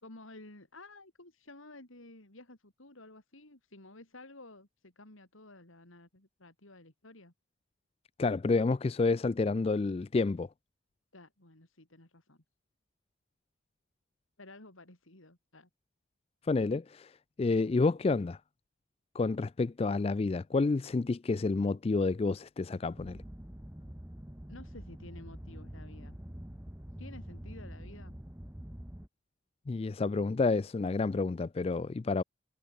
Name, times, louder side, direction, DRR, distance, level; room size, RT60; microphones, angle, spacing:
voice 1, 0.0-7.3 11.1-12.4 14.4-15.7 24.5-26.2 27.0-28.1, left 2 dB, 75° left, 4.0 m, -52 dB
voice 2, 8.2-10.5 16.5-17.1 17.4-18.4 19.1-23.2 29.7-32.2, left 3 dB, 30° left, 0.3 m, -29 dB
sound 1, 22.9-29.1, equal, 10° right, 1.0 m, -46 dB
head